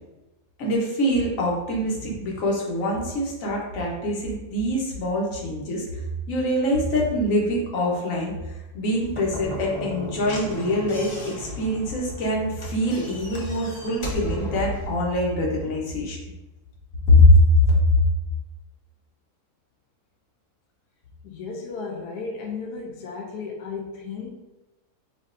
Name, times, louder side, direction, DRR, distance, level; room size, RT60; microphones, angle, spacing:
voice 1, 0.6-5.8 6.3-16.2 17.1-17.8, left 1 dB, 60° left, -2 dB, 1.4 m, -23 dB
Slam / Knock, 9.1-14.9, left 1 dB, 40° left, 0.4 m, -35 dB
voice 2, 21.2-24.3, left 4 dB, 90° left, 1 dB, 1.2 m, -34 dB
7.3 x 2.6 x 2.5 m, 1.0 s
omnidirectional pair, 1.7 m